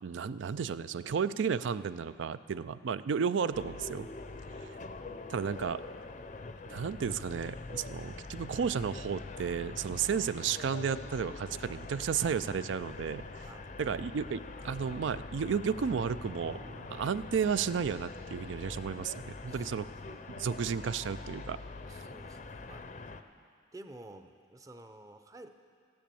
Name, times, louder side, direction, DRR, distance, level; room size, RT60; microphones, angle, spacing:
voice 1, 0.0-4.1 4.6-4.8 5.3-5.8 6.7-13.5 13.8-16.6 16.9-21.6, right 6 dB, 80° right, 15 dB, 0.4 m, -33 dB
sound 1, 3.5-23.2, left 3 dB, 40° left, 0.5 m, -44 dB
voice 2, 13.4-13.8 19.5-20.0 21.9-22.9 23.3-23.4 23.7-25.5, right 2 dB, 20° right, 8 dB, 0.6 m, -52 dB
sound 2, 16.1-20.8, right 1 dB, 55° right, 1.0 m, -57 dB
15.0 x 10.5 x 6.9 m, 2.2 s
head